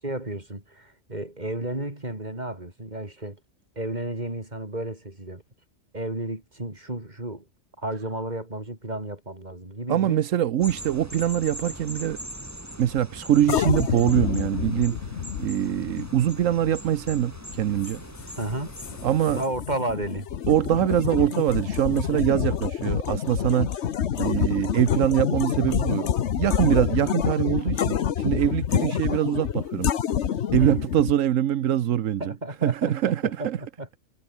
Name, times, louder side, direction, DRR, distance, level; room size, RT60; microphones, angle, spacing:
voice 1, 0.0-3.4 3.7-5.4 5.9-7.5 7.8-10.2 18.4-18.8 19.3-20.3 30.6-30.8 32.2-34.0, right 1 dB, 35° right, 4.9 m, -32 dB
voice 2, 9.9-12.2 12.8-15.0 15.4-18.0 19.0-19.4 20.5-23.7 24.2-29.9 30.5-32.3 32.6-33.6, right 11 dB, 80° right, 1.2 m, -23 dB
sound 1, 10.6-19.5, equal, 10° right, 5.1 m, -41 dB
sound 2, 13.5-31.1, left 9 dB, 65° left, 1.2 m, -28 dB
omnidirectional pair, 1.3 m